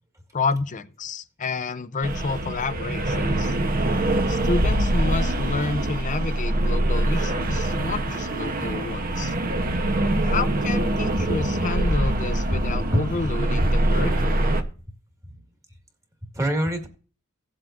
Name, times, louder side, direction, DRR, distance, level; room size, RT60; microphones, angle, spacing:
voice 1, 0.3-3.6 4.3-9.3 10.2-14.4, left 3 dB, 35° left, 0.6 m, -29 dB
sound 1, 2.0-14.6, right 1 dB, 45° right, 0.9 m, -24 dB
voice 2, 11.2-11.7 12.5-13.1 16.2-16.9, equal, 15° right, 1.7 m, -26 dB
16.5 x 7.6 x 2.5 m
head